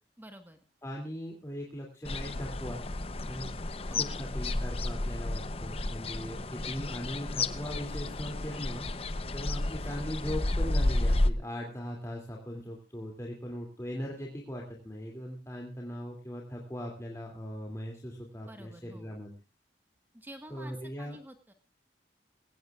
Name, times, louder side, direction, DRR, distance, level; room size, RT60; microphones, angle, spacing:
voice 1, 0.2-0.6 3.9-4.3 18.4-19.2 20.1-21.5, right 1 dB, 10° right, 6 dB, 1.4 m, -49 dB
voice 2, 0.8-2.8 3.3-3.5 4.0-8.9 9.3-19.3 20.5-21.2, equal, 15° left, 0 dB, 2.6 m, -39 dB
sound 1, 2.0-11.3, left 2 dB, 30° left, 0.8 m, -32 dB
21.5 x 17.5 x 2.4 m, 0.30 s
head